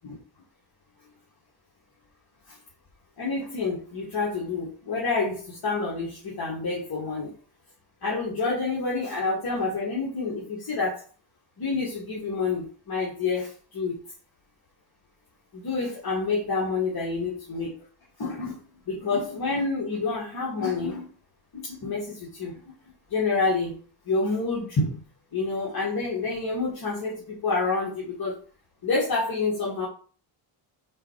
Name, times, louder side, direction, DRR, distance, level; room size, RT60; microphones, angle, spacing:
voice 1, 3.2-7.3 8.0-11.0 11.6-14.0 15.5-17.7 18.2-21.1 21.5-22.6 23.1-23.8 24.1-25.0 25.3-28.4 28.8-29.9, left 3 dB, 45° left, -5 dB, 2.2 m, -28 dB
4.9 x 4.4 x 4.8 m, 0.41 s
cardioid pair, 85°, 49 cm